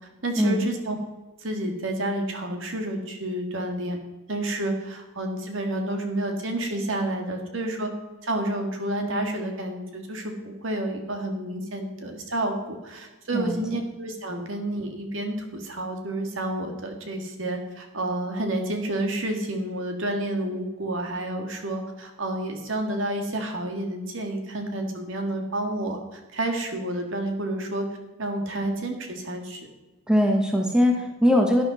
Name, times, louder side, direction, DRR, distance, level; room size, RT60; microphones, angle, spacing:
voice 1, 0.2-1.0 1.4-4.0 4.3-7.9 8.2-27.9 28.2-29.6, right 1 dB, 65° right, 3 dB, 1.9 m, -30 dB
voice 2, 30.1-31.6, equal, 5° right, 2 dB, 1.1 m, -21 dB
11.5 x 10.5 x 4.1 m, 1.1 s
head